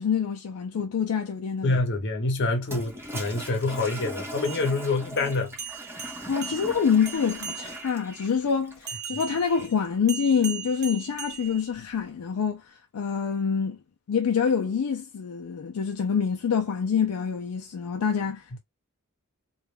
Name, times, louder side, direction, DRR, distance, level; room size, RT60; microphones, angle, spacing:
voice 1, 0.0-1.8 6.3-12.6 12.9-13.8 14.1-18.6, left 6 dB, 70° left, 0.4 m, -26 dB
voice 2, 1.6-5.6, left 3 dB, 55° left, 0.8 m, -26 dB
Toilet flush, 2.6-9.9, right 1 dB, 10° right, 0.7 m, -40 dB
sound 1, 4.3-8.0 8.9-12.1, right 7 dB, 50° right, 0.5 m, -39 dB
2.4 x 2.1 x 3.0 m
head